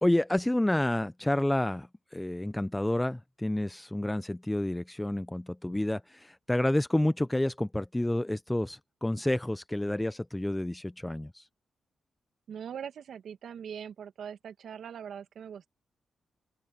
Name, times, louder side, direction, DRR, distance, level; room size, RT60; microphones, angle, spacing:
voice 1, 0.0-11.5, left 1 dB, 10° left, 0.8 m, -29 dB
voice 2, 12.5-15.7, right 8 dB, 75° right, 2.0 m, -41 dB
open air
supercardioid pair, 50°, 0 cm